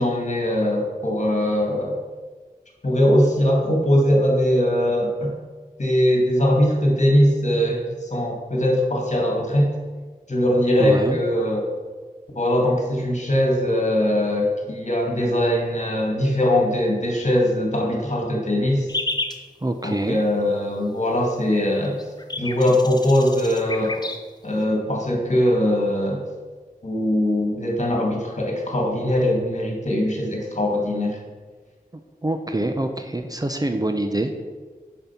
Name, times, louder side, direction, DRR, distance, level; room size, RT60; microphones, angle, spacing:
voice 1, 0.0-2.0 2.8-5.3 5.8-9.7 10.3-11.7 12.3-18.9 19.8-22.0 22.4-24.0 24.4-26.2 26.8-31.2, left 1 dB, 50° left, -1 dB, 2.1 m, -21 dB
voice 2, 10.8-11.2 19.6-20.2 32.2-34.4, right 1 dB, 25° right, 6 dB, 0.7 m, -25 dB
sound 1, 18.9-19.4 21.6-21.7 21.8-24.2, left 2 dB, 25° left, 0.8 m, -30 dB
6.6 x 5.4 x 5.9 m, 1.4 s
wide cardioid pair, 50°, 15 cm